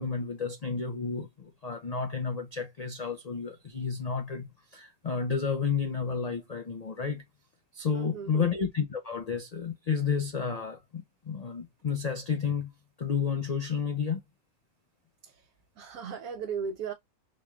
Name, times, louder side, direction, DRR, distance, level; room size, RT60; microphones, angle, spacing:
voice 1, 0.0-7.2 7.7-12.7 13.0-14.2, left 6 dB, 80° left, 0.3 m, -31 dB
voice 2, 7.9-8.5 15.2-15.5 15.8-16.9, right 6 dB, 70° right, 1.0 m, -37 dB
4.0 x 3.2 x 2.3 m
omnidirectional pair, 1.6 m